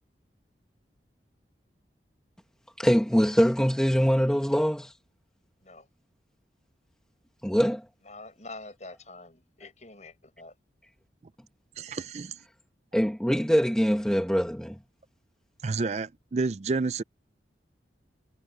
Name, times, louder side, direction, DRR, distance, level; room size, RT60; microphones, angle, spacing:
voice 1, 2.8-4.9 7.4-7.8 12.9-14.8, equal, 5° left, 1.2 m, -23 dB
voice 2, 8.0-10.5, left 2 dB, 40° left, 7.5 m, -46 dB
voice 3, 11.8-12.4 15.6-17.0, right 3 dB, 40° right, 0.4 m, -30 dB
head